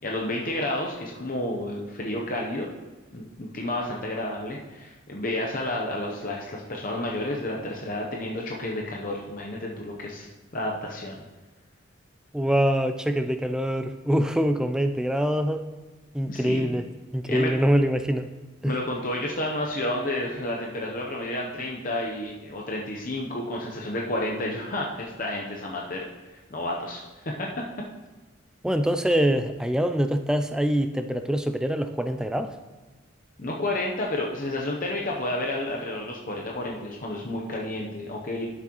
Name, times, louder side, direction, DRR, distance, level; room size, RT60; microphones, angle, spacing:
voice 1, 0.0-2.7 3.1-11.2 16.3-16.7 17.3-17.5 18.6-26.0 26.3-27.5 33.4-38.5, left 1 dB, 40° left, -1 dB, 0.7 m, -31 dB
voice 2, 12.3-15.6 16.1-16.9 17.1-18.3 18.6-18.8 28.6-32.6, equal, 5° right, 8 dB, 0.3 m, -24 dB
12.0 x 6.1 x 3.0 m, 1.2 s
head